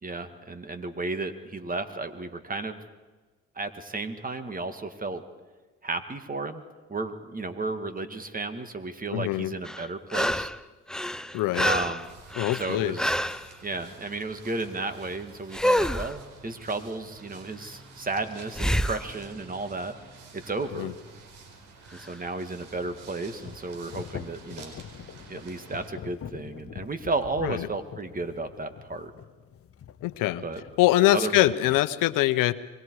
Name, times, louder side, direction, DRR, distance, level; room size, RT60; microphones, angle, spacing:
voice 1, 0.0-2.8 3.6-5.2 5.8-6.6 6.9-10.5 11.6-12.1 12.5-13.2 13.6-19.9 20.3-20.9 21.9-24.8 25.3-29.1 30.4-30.6 31.1-31.8, right 3 dB, 25° right, 9 dB, 2.1 m, -33 dB
voice 2, 9.1-9.5 11.3-11.7 12.4-12.9 20.7-20.9 27.4-27.7 30.0-30.4 30.8-32.5, left 16 dB, 85° left, 14 dB, 0.9 m, -23 dB
sound 1, 9.6-10.6 10.9-13.5 15.5-16.2 18.5-19.1 22.0-22.1, equal, ahead, 0.7 m, -27 dB
sound 2, 12.0-25.9, right 4 dB, 75° right, 4.9 m, -50 dB
sound 3, 22.7-30.9, left 9 dB, 45° left, 1.0 m, -44 dB
26.5 x 22.5 x 4.8 m, 1.3 s
cardioid pair, 85°, 32 cm